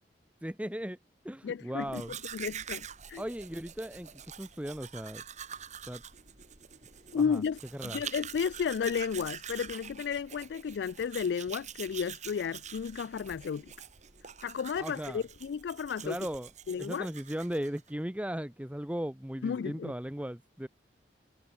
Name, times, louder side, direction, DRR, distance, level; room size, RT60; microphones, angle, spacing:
voice 1, 0.4-1.0 1.2-2.1 3.2-5.2 5.9-6.0 7.1-7.4 7.7-8.0 14.8-15.2 16.0-16.5 16.8-20.7, equal, 10° right, 1.0 m, -37 dB
voice 2, 1.4-3.2 7.1-13.7 14.4-16.2 16.7-17.1 19.4-19.9, left 6 dB, 70° left, 0.3 m, -33 dB
Domestic sounds home sounds, 1.8-17.9, right 8 dB, 45° right, 2.2 m, -45 dB
head